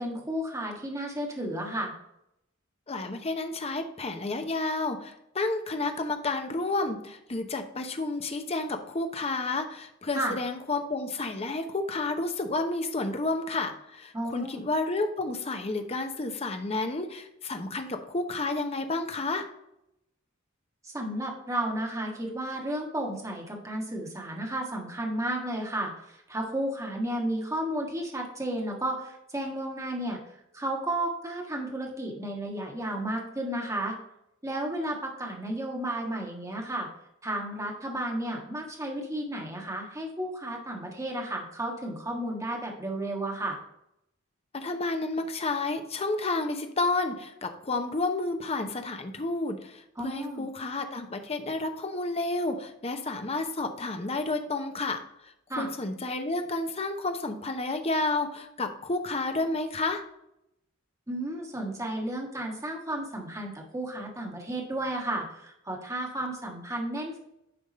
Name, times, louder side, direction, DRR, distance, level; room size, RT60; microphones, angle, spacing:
voice 1, 0.0-1.9 10.1-10.3 14.1-14.6 20.8-30.2 30.5-34.0 34.4-36.9 37.2-43.6 50.0-50.5 55.5-55.7 61.1-67.2, right 1 dB, 15° right, 0 dB, 1.5 m, -33 dB
voice 2, 2.9-19.5 44.5-60.0, left 2 dB, 30° left, 6 dB, 0.8 m, -31 dB
10.0 x 3.6 x 4.1 m, 0.82 s
head